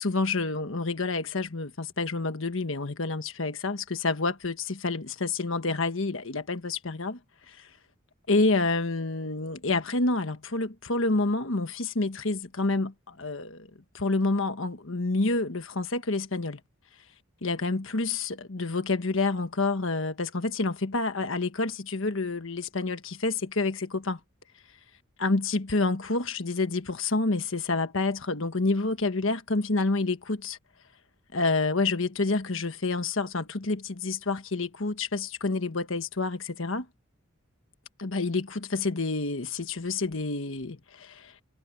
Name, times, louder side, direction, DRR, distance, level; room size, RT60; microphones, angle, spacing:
voice 1, 0.0-7.2 7.5-7.7 8.3-13.7 13.9-16.6 17.4-24.2 25.2-30.6 31.3-36.9 38.0-41.3, left 3 dB, 75° left, 1.4 m, -28 dB
head